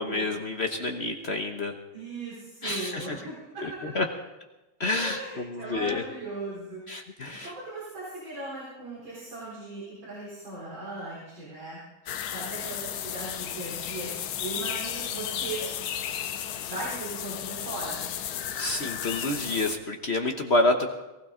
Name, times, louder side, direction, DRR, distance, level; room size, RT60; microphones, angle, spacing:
voice 1, 0.0-1.7 2.6-3.2 3.6-4.1 4.8-6.0 6.9-7.5 18.6-20.9, left 2 dB, 40° left, 4 dB, 1.0 m, -28 dB
voice 2, 1.9-3.8 5.0-6.8 7.4-11.8 12.3-14.1 14.4-15.7 16.7-18.1, right 2 dB, 65° right, -7 dB, 4.7 m, -38 dB
sound 1, 12.1-19.8, left 10 dB, 75° left, 1.6 m, -34 dB
23.0 x 15.5 x 3.8 m, 1.0 s
omnidirectional pair, 2.3 m